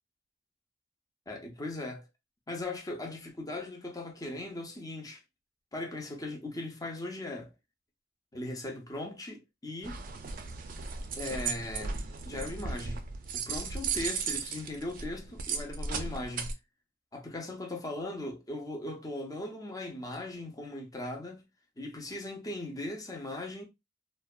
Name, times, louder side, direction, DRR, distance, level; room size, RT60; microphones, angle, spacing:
voice 1, 1.3-2.1 2.5-5.2 5.7-7.5 8.3-10.0 11.2-12.0 12.3-13.0 13.3-16.5 17.1-21.4 21.8-23.6, left 2 dB, 20° left, 0.6 m, -38 dB
sound 1, 9.8-16.5, right 5 dB, 50° right, 0.4 m, -36 dB
2.6 x 2.1 x 2.3 m
head